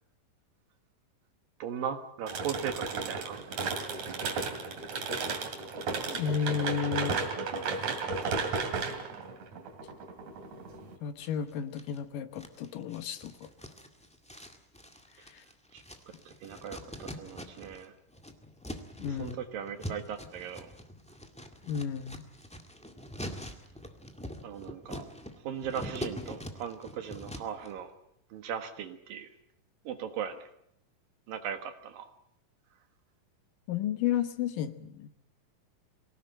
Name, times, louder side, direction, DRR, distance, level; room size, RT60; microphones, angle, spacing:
voice 1, 1.6-3.4 15.7-15.8 16.3-17.9 19.1-20.7 24.4-25.1 25.4-27.9 28.3-29.3 29.8-30.4 31.3-32.1, right 8 dB, 80° right, 7 dB, 3.3 m, -38 dB
sound 1, 2.3-10.9, right 4 dB, 55° right, 3.6 m, -34 dB
voice 2, 6.1-7.2 11.0-13.5 15.3-15.4 19.0-19.4 21.7-22.2 33.7-35.1, left 8 dB, 75° left, 11 dB, 2.7 m, -32 dB
sound 2, 11.2-12.0 12.4-17.8 18.1-27.7, equal, 5° left, 0.6 m, -43 dB
23.5 x 17.5 x 8.9 m, 0.74 s
omnidirectional pair, 4.0 m